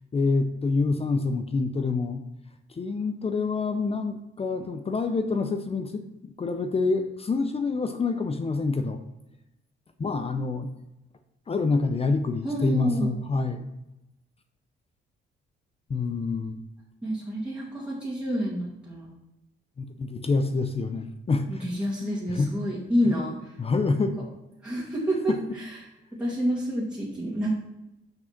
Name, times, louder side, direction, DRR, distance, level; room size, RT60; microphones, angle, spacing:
voice 1, 0.1-2.2 2.8-9.0 10.0-10.7 11.5-13.6 15.9-16.6 19.8-21.6 22.3-22.5 23.0-23.2 23.6-24.1 25.3-25.4, left 3 dB, 30° left, 7 dB, 0.6 m, -27 dB
voice 2, 12.4-13.2 17.0-19.1 21.5-23.4 24.6-25.8 26.2-27.5, equal, 5° right, -6 dB, 2.2 m, -28 dB
6.1 x 5.0 x 5.8 m, 0.92 s
cardioid pair, 90°, 20 cm